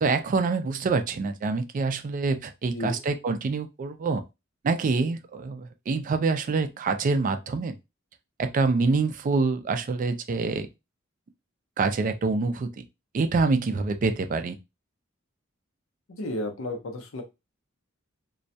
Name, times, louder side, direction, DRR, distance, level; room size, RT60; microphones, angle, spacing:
voice 1, 0.0-4.2 4.6-7.7 8.4-10.7 11.8-12.8 13.1-14.5, right 4 dB, 40° right, 0.3 m, -26 dB
voice 2, 2.7-3.0 16.1-17.2, left 1 dB, 90° left, 0.6 m, -33 dB
2.2 x 2.1 x 2.6 m
head